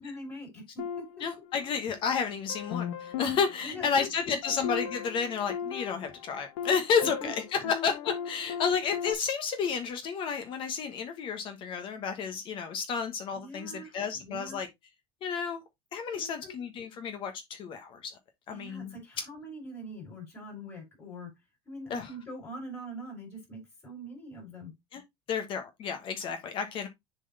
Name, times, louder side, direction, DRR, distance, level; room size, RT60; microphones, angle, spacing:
voice 1, 0.0-1.0 3.6-4.6 7.0-7.7 8.5-8.6 13.3-14.6 16.1-16.5 18.5-21.3 21.7-24.7, equal, 15° left, 3.9 m, -43 dB
sound 1, 0.8-2.0 2.5-9.1, left 8 dB, 75° left, 1.5 m, -37 dB
voice 2, 1.2-14.7 15.2-15.6 15.9-18.1 18.5-18.9 21.9-22.1 24.9-25.0 25.3-26.9, left 6 dB, 35° left, 1.2 m, -31 dB
7.1 x 4.0 x 4.0 m
supercardioid pair, 150°, 14 cm